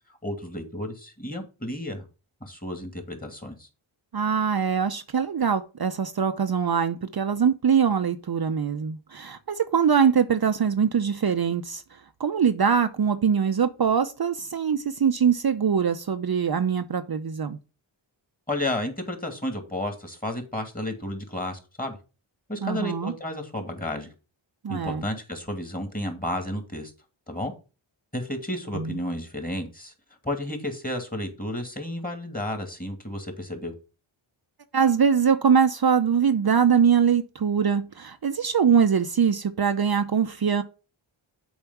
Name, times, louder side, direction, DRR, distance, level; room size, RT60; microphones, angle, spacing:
voice 1, 0.2-2.0 2.4-3.7 18.5-22.0 22.5-24.1 24.7-26.9 27.3-27.5 28.1-29.9 30.2-33.7, left 1 dB, 15° left, 2.3 m, -32 dB
voice 2, 4.1-17.6 22.6-23.1 24.6-25.0 28.7-29.0 34.7-40.6, right 7 dB, 50° right, 0.7 m, -23 dB
7.2 x 4.4 x 5.7 m
cardioid pair, 55°, 49 cm